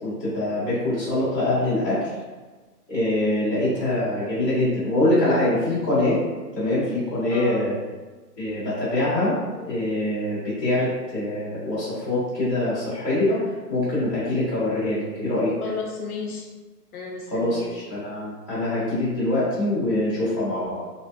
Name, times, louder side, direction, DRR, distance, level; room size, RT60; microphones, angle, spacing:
voice 1, 0.0-2.0 2.9-6.2 6.5-7.7 8.4-13.4 13.7-15.5 17.3-20.9, left 1 dB, 10° left, -15 dB, 0.6 m, -24 dB
voice 2, 7.3-7.6 15.6-16.5 16.9-17.7, left 4 dB, 65° left, 1 dB, 0.5 m, -33 dB
2.6 x 2.2 x 2.4 m, 1.3 s
hypercardioid pair, 150°, 48 cm